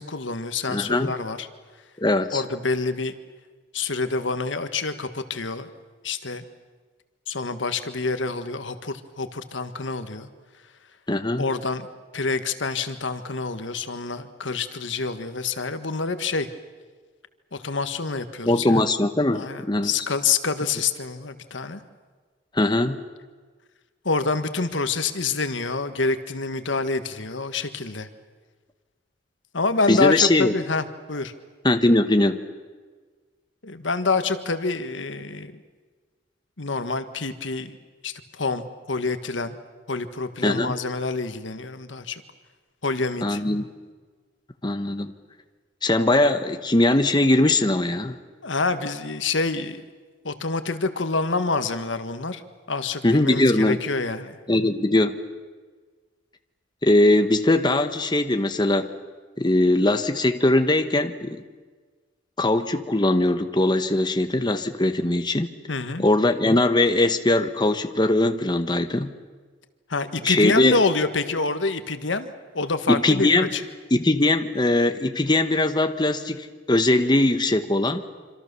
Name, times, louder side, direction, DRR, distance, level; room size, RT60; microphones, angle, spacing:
voice 1, 0.0-1.5 2.3-3.1 3.7-5.7 6.0-6.4 7.3-10.3 11.4-11.9 12.1-16.5 17.5-18.8 19.3-21.8 24.1-28.1 29.5-31.3 33.6-35.5 36.6-37.8 38.0-39.6 39.9-42.2 42.8-43.4 48.4-49.8 50.2-52.4 52.7-54.4 65.7-66.1 69.9-73.6, left 3 dB, 85° left, 10 dB, 1.6 m, -27 dB
voice 2, 0.7-1.1 2.0-2.4 11.1-11.4 18.4-19.9 22.5-23.0 29.9-30.6 31.6-32.4 40.4-40.7 43.2-43.7 44.6-45.1 45.8-48.2 53.0-53.8 54.5-55.1 56.8-58.9 59.4-61.4 62.4-65.5 66.0-69.1 70.2-70.8 72.9-73.5 73.9-78.0, left 2 dB, 25° left, 8 dB, 1.1 m, -21 dB
26.5 x 26.0 x 6.9 m, 1.4 s
head